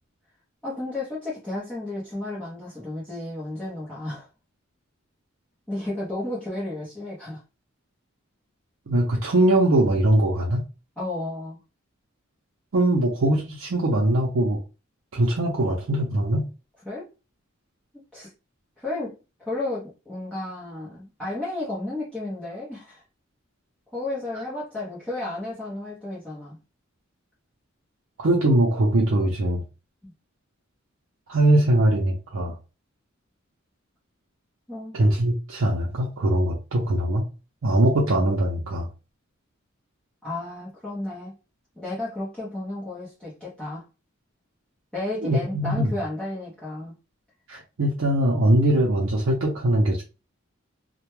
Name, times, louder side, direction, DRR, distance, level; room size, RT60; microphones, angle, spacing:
voice 1, 0.6-4.3 5.7-7.4 11.0-11.6 16.8-17.1 18.1-18.3 18.8-19.2 19.4-23.0 23.9-26.6 30.0-30.1 34.7-35.0 40.2-41.4 41.8-43.8 44.9-47.0, left 2 dB, 5° left, 0.6 m, -32 dB
voice 2, 8.9-10.6 12.7-14.6 15.1-16.5 28.2-29.6 31.3-32.5 34.9-37.2 37.6-38.9 45.2-45.9 47.5-50.0, right 1 dB, 70° right, 0.5 m, -21 dB
2.1 x 2.1 x 3.0 m
head